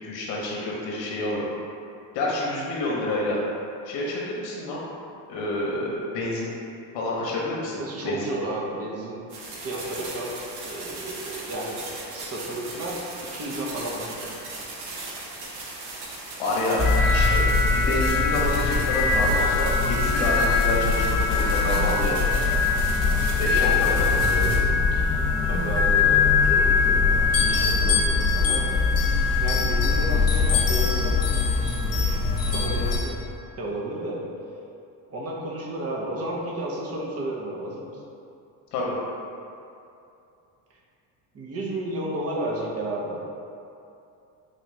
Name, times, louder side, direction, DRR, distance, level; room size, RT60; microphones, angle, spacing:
voice 1, 0.0-1.4 2.1-3.4 3.8-4.8 5.3-6.5 6.9-8.4 16.4-16.8 17.1-22.3 23.4-25.0 38.7-38.9, left 1 dB, 80° left, -4 dB, 0.9 m, -28 dB
voice 2, 7.8-9.2 9.6-10.3 10.6-11.8 12.1-14.3 23.5-24.0 25.4-28.7 29.4-31.2 32.4-33.2 33.6-34.2 35.1-37.9 41.3-43.2, right 1 dB, 35° right, -4 dB, 0.8 m, -32 dB
sound 1, 9.3-24.6, right 2 dB, 60° right, 0.9 m, -38 dB
sound 2, 16.8-33.0, left 4 dB, 35° left, 1.1 m, -21 dB
4.1 x 2.4 x 3.1 m, 2.7 s
supercardioid pair, 90°, 44 cm